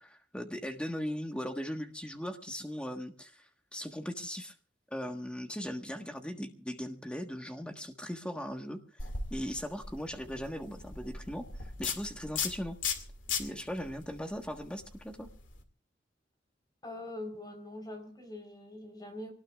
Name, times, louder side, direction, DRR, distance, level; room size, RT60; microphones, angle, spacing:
voice 1, 0.0-4.5 4.9-8.8 9.3-12.8 13.4-15.3, equal, 5° left, 4 dB, 1.4 m, -39 dB
sound 1, 9.0-15.6, left 6 dB, 85° left, 2.3 m, -39 dB
voice 2, 16.8-19.3, left 1 dB, 20° left, 4 dB, 4.0 m, -43 dB
25.0 x 19.0 x 2.4 m, 0.42 s
head